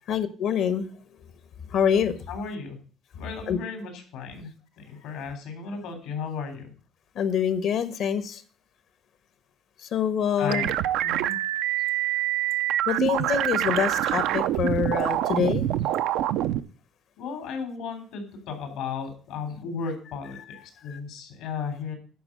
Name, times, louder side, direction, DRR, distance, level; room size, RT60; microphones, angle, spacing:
voice 1, 0.1-0.9 1.7-2.2 3.5-3.6 7.1-8.4 9.9-10.7 12.9-15.7, left 8 dB, 65° left, 1.1 m, -25 dB
voice 2, 2.3-2.8 3.1-6.7 10.4-10.7 11.0-11.3 17.2-22.0, left 5 dB, 85° left, 3.3 m, -35 dB
sound 1, 10.5-16.6, right 12 dB, 80° right, 0.5 m, -25 dB
11.0 x 4.6 x 7.4 m
cardioid pair, 105°, 0 cm